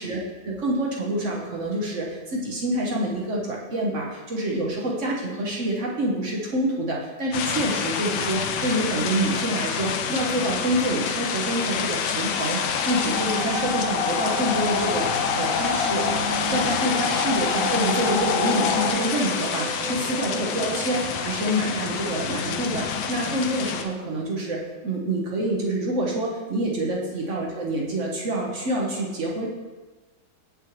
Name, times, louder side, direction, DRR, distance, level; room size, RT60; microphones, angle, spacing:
voice 1, 0.0-16.1 16.5-29.5, right 1 dB, 50° right, -2 dB, 1.1 m, -27 dB
sound 1, 7.3-23.8, left 7 dB, 80° left, 1.2 m, -28 dB
sound 2, 12.3-18.9, left 4 dB, 65° left, 0.9 m, -27 dB
sound 3, 17.6-23.3, right 1 dB, 85° right, 1.6 m, -37 dB
7.3 x 5.6 x 3.1 m, 1.2 s
omnidirectional pair, 1.8 m